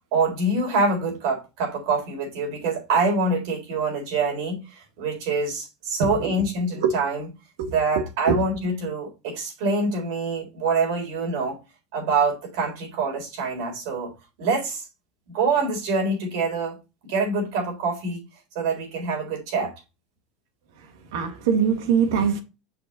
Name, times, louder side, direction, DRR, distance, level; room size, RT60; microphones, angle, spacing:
voice 1, 0.1-7.3 7.7-11.6 11.9-14.1 14.4-14.9 15.3-16.8 17.0-18.2 18.5-19.7, right 3 dB, 65° right, 4.0 m, -25 dB
voice 2, 6.0-6.3 6.7-6.9 7.6-8.4 21.1-22.4, right 6 dB, 85° right, 1.8 m, -23 dB
6.3 x 5.3 x 4.1 m
cardioid pair, 170°, 2 cm